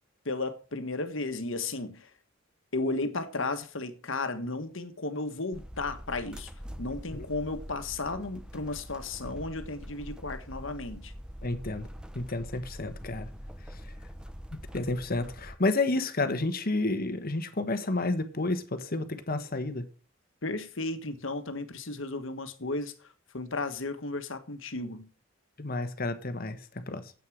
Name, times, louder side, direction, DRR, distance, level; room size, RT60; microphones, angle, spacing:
voice 1, 0.2-2.1 2.7-6.5 6.8-11.1 20.4-22.9 23.3-25.1, left 2 dB, 65° left, 1.5 m, -34 dB
sound 1, 5.5-15.6, equal, 5° right, 0.9 m, -44 dB
voice 2, 11.4-11.9 12.1-13.3 14.7-19.8 25.6-27.1, left 2 dB, 45° left, 1.3 m, -30 dB
9.4 x 8.6 x 6.4 m
head